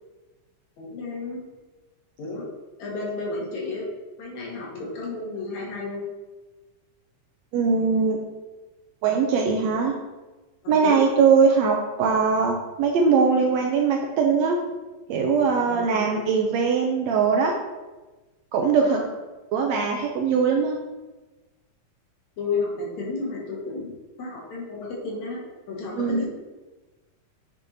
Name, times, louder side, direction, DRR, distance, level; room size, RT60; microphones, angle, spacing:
voice 1, 0.8-1.4 2.2-2.5 2.8-3.9 4.2-6.0 10.6-11.0 15.6-16.2 18.8-19.1 22.4-23.9 24.2-25.4 25.7-26.3, left 3 dB, 65° left, -4 dB, 2.8 m, -32 dB
voice 2, 7.5-8.2 9.0-9.9 10.7-14.6 15.1-17.5 18.5-19.0 19.5-20.8 26.0-26.2, right 5 dB, 80° right, 1 dB, 1.6 m, -21 dB
9.0 x 5.7 x 2.8 m, 1.2 s
omnidirectional pair, 3.5 m